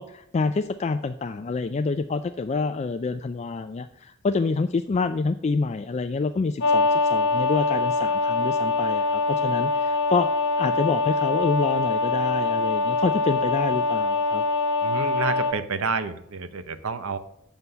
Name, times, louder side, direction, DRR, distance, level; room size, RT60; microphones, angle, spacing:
voice 1, 0.0-10.3 10.6-14.4, left 4 dB, 30° left, 8 dB, 0.3 m, -27 dB
sound 1, 6.6-15.5, left 3 dB, 55° left, 1.2 m, -23 dB
voice 2, 14.8-17.2, right 4 dB, 80° right, 12 dB, 0.8 m, -29 dB
7.9 x 7.0 x 5.4 m, 0.78 s
head